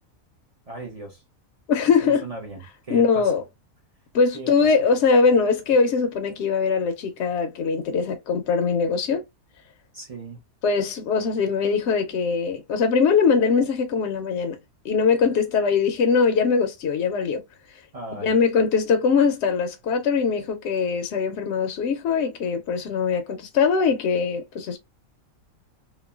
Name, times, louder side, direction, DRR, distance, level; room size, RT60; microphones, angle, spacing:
voice 1, 0.7-1.2 2.0-3.3 4.3-4.7 9.9-10.4 17.9-18.3, right 2 dB, 45° right, 0.5 m, -37 dB
voice 2, 1.7-2.3 2.9-3.4 4.1-9.2 10.6-14.6 14.8-17.4 18.1-24.8, left 5 dB, 65° left, 0.7 m, -21 dB
3.0 x 2.1 x 2.3 m
omnidirectional pair, 1.5 m